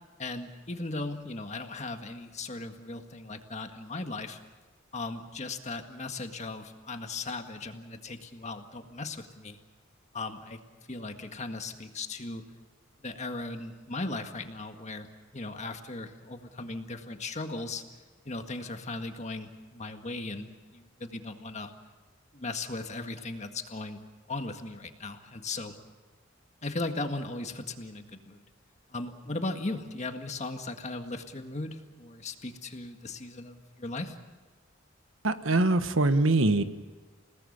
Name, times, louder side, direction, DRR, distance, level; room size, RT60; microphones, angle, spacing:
voice 1, 0.2-4.4 4.9-9.6 10.1-10.6 10.9-12.4 13.0-15.1 15.3-17.8 18.3-21.7 22.3-24.0 24.3-25.8 26.6-28.4 28.9-34.2, left 2 dB, 35° left, 6 dB, 1.8 m, -37 dB
voice 2, 35.2-36.6, right 2 dB, 75° right, 11 dB, 1.3 m, -23 dB
29.0 x 18.5 x 6.7 m, 1.3 s
head